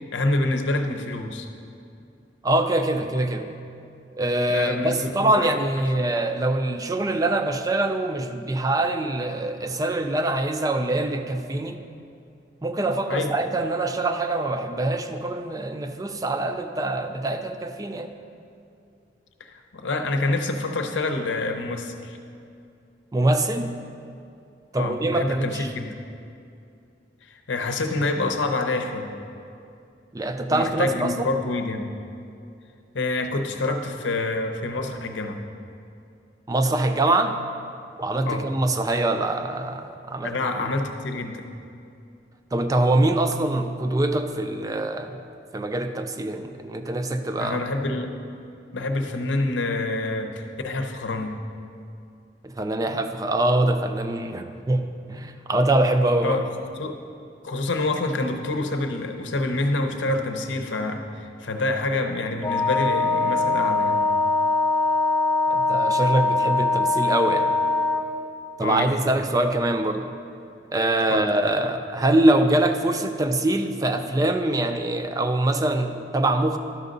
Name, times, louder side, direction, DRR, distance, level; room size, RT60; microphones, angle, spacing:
voice 1, 0.0-1.5 4.5-5.5 13.1-13.3 19.4-22.2 24.8-26.0 27.3-29.1 30.5-31.8 32.9-35.4 38.3-38.4 40.2-41.4 47.4-48.2 48.7-51.4 56.2-56.5 56.8-57.0 57.4-64.0 68.6-69.0 71.1-71.3, left 2 dB, 85° left, 5 dB, 0.7 m, -27 dB
voice 2, 2.4-3.5 4.1-11.8 12.6-18.1 23.1-23.7 24.7-25.7 30.1-31.3 36.5-37.4 38.0-40.4 42.5-45.2 45.5-47.6 52.4-56.4 65.5-67.5 68.6-70.2 70.7-76.6, right 2 dB, 20° right, 7 dB, 0.4 m, -24 dB
Wind instrument woodwind instrument, 62.4-68.1, left 3 dB, 15° left, 0.7 m, -22 dB
11.5 x 6.3 x 3.9 m, 2.6 s
head